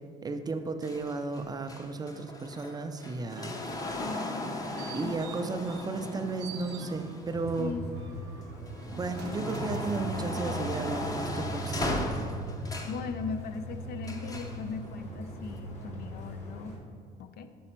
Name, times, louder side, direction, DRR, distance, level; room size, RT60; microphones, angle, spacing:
voice 1, 0.2-3.5 4.9-7.7 8.9-12.3, right 3 dB, 25° right, 8 dB, 0.4 m, -34 dB
sound 1, 0.8-8.0 8.5-13.1 14.0-14.6 15.5-15.6, left 1 dB, 20° left, 0.6 m, -37 dB
voice 2, 3.4-3.7 4.0-4.7 5.0-5.3 7.6-7.8 12.9-16.8 17.2-17.5, left 5 dB, 70° left, 10 dB, 0.5 m, -39 dB
sound 2, 4.4-6.1 6.4-7.4 7.9-10.5 11.0-11.1, right 9 dB, 80° right, 0.6 m, -50 dB
sound 3, 7.2-16.8, equal, 40° left, 1.4 m, -39 dB
5.4 x 4.9 x 4.3 m, 2.1 s
cardioid pair, 110°, 17 cm